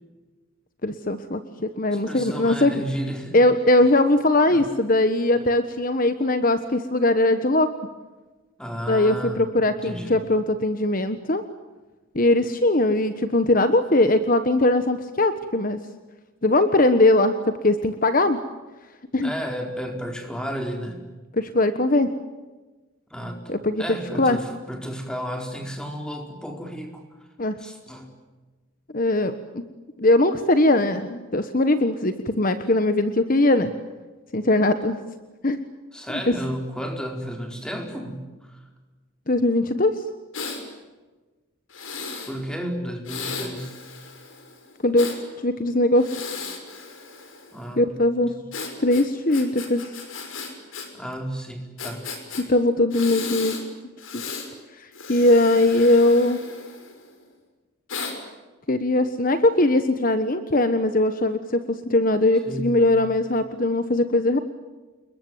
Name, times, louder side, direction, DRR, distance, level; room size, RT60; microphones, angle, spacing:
voice 1, 0.8-2.7 3.3-7.7 8.9-11.4 12.1-15.8 16.4-18.4 19.1-19.3 21.4-22.1 23.5-23.8 24.2-24.4 27.4-27.6 28.9-29.6 30.0-33.7 34.3-35.0 35.4-35.6 36.3-36.4 39.3-39.9 44.8-45.2 45.4-46.1 47.8-48.3 48.8-49.8 52.5-53.6 54.1-54.2 54.8-56.4 58.7-64.4, left 2 dB, 40° left, 10 dB, 1.3 m, -20 dB
voice 2, 1.9-3.4 4.5-4.7 5.4-5.5 8.6-9.5 9.8-10.3 19.2-21.0 23.1-27.0 27.6-28.1 35.9-38.6 42.3-43.8 47.5-48.0 48.4-48.5 50.9-52.1 62.4-62.8, equal, 5° left, 3 dB, 4.5 m, -33 dB
Breathing, 40.3-40.6 41.7-42.3 43.0-45.2 45.9-47.6 48.5-50.9 51.1-51.2 51.8-52.4 52.9-53.6 54.0-54.5 54.9-57.1 57.9-58.1, left 5 dB, 70° left, 6.1 m, -35 dB
29.5 x 21.5 x 9.4 m, 1.2 s
head